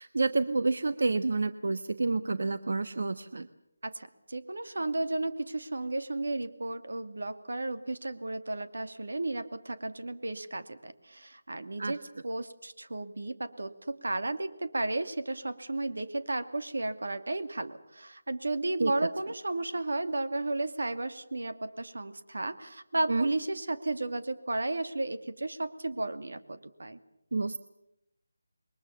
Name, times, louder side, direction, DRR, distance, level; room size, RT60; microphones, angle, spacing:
voice 1, 0.0-3.5 11.8-12.0 18.8-18.9 23.1-23.3 27.3-27.6, right 3 dB, 65° right, 11 dB, 1.2 m, -29 dB
voice 2, 3.8-27.0, right 2 dB, 90° right, 10 dB, 2.4 m, -33 dB
28.0 x 22.5 x 7.1 m, 0.80 s
figure-of-eight pair, 175°, 0 cm